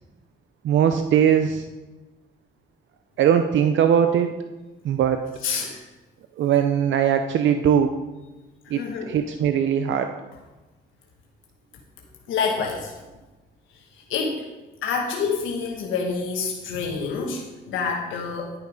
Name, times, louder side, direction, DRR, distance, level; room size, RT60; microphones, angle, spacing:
voice 1, 0.6-1.7 3.2-4.3 4.8-5.2 6.4-7.9 8.7-10.1, right 8 dB, 70° right, 7 dB, 0.6 m, -20 dB
voice 2, 5.4-5.8 8.6-9.1 12.3-12.9 14.1-14.5 14.8-18.5, left 5 dB, 85° left, 0 dB, 1.3 m, -27 dB
11.0 x 6.7 x 4.9 m, 1.1 s
cardioid pair, 90°, 20 cm